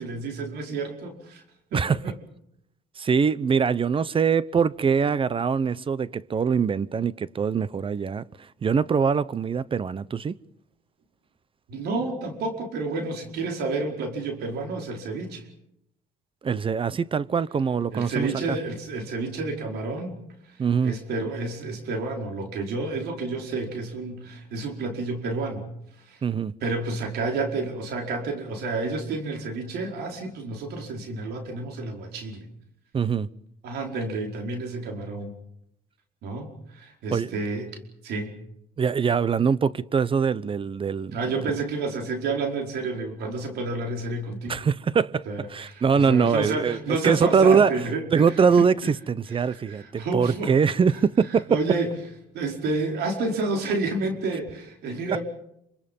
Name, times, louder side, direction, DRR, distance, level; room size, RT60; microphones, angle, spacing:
voice 1, 0.0-1.4 1.7-2.1 11.7-15.4 17.9-20.2 20.5-20.6 20.8-25.7 26.1-26.2 26.6-32.4 33.6-35.3 36.2-37.7 38.0-38.3 41.1-44.7 45.3-48.7 49.3-50.5 51.3-51.9 52.3-55.2, right 3 dB, 75° right, 4.9 m, -30 dB
voice 2, 3.0-8.2 8.6-10.3 16.4-18.6 20.6-20.9 26.2-26.5 32.9-33.3 37.1-37.4 38.8-41.2 44.5-45.2 45.5-46.8 47.0-47.7 48.1-51.5, right 6 dB, 30° right, 0.9 m, -23 dB
27.0 x 26.0 x 5.5 m
cardioid pair, 110°, 17 cm